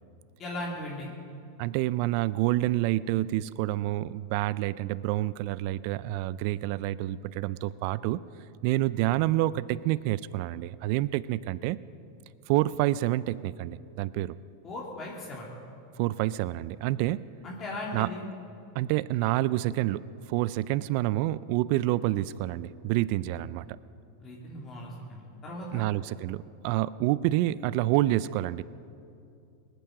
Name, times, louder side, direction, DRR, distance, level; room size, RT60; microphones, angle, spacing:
voice 1, 0.4-1.1 14.6-15.5 17.4-18.2 24.2-25.8, left 1 dB, 35° left, -3 dB, 2.9 m, -38 dB
voice 2, 1.6-8.2 8.6-11.8 12.5-14.3 16.0-17.3 17.9-18.1 18.7-23.8 25.7-28.6, right 16 dB, 60° right, 18 dB, 0.4 m, -28 dB
19.5 x 9.1 x 6.5 m, 2.5 s
hypercardioid pair, 105°, 0 cm